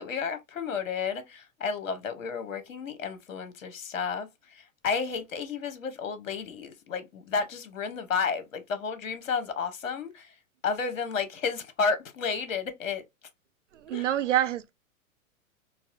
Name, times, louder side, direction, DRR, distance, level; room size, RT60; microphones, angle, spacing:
voice 1, 0.0-10.3 10.6-13.0 13.9-14.1, left 5 dB, 65° left, 0.9 m, -32 dB
voice 2, 13.7-14.7, right 12 dB, 60° right, 0.5 m, -27 dB
4.1 x 2.0 x 2.5 m
figure-of-eight pair, 105°, 42 cm